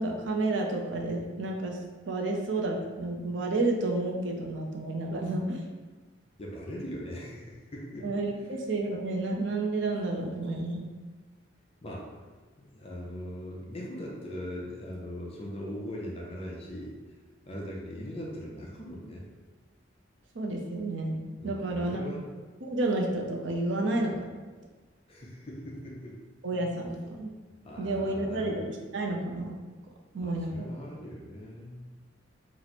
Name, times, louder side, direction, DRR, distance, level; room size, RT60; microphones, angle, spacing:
voice 1, 0.0-1.8 2.1-5.6 8.0-10.9 20.3-22.0 22.6-24.3 26.4-27.3 27.8-29.6 30.1-30.7, right 2 dB, 65° right, 1 dB, 0.5 m, -30 dB
voice 2, 6.4-8.1 8.4-8.6 11.8-12.1 12.6-17.0 17.4-19.2 21.4-22.3 25.1-26.2 27.6-28.6 30.2-31.9, equal, 30° left, -2 dB, 0.5 m, -40 dB
2.9 x 2.0 x 4.1 m, 1.3 s
head